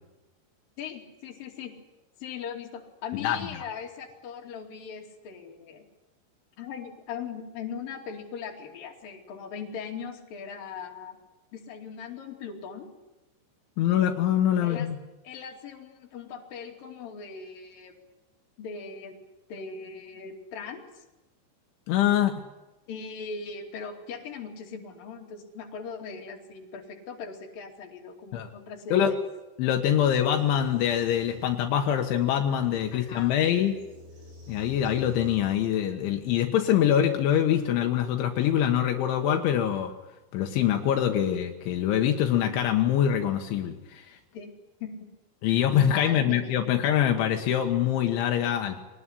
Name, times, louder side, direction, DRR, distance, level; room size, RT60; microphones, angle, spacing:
voice 1, 0.8-1.7 2.2-5.9 6.6-11.2 11.5-12.9 14.6-14.9 15.2-17.9 18.6-19.2 19.5-21.0 22.9-29.2 32.9-33.4 36.7-36.9 44.3-44.5 44.8-45.1 45.5-45.6 45.9-46.6, left 6 dB, 50° left, 1 dB, 4.1 m, -39 dB
voice 2, 13.8-15.0 21.9-22.3 28.3-28.5 28.9-29.1 29.6-33.7 34.5-39.9 40.3-44.2 45.4-48.9, left 10 dB, 80° left, 4 dB, 3.7 m, -24 dB
sound 1, 30.4-35.5, left 3 dB, 75° right, 9.4 m, -49 dB
23.0 x 19.0 x 10.0 m, 1.1 s
omnidirectional pair, 5.4 m